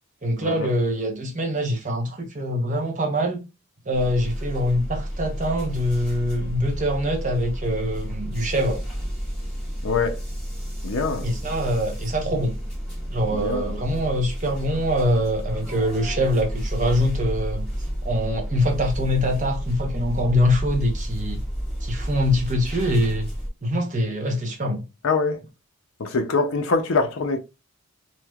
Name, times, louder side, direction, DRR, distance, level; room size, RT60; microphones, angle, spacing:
voice 1, 0.2-3.4 3.9-8.8 11.2-12.5 13.1-17.6 18.0-21.4 21.8-23.3 23.6-24.8, equal, 35° right, 0.8 m, -24 dB
sound 1, 3.9-23.5, equal, 5° left, 1.2 m, -31 dB
voice 2, 9.8-10.2 10.8-11.3 13.3-13.7 25.0-25.4 26.0-27.4, left 4 dB, 60° left, 0.5 m, -24 dB
3.1 x 2.7 x 2.3 m
head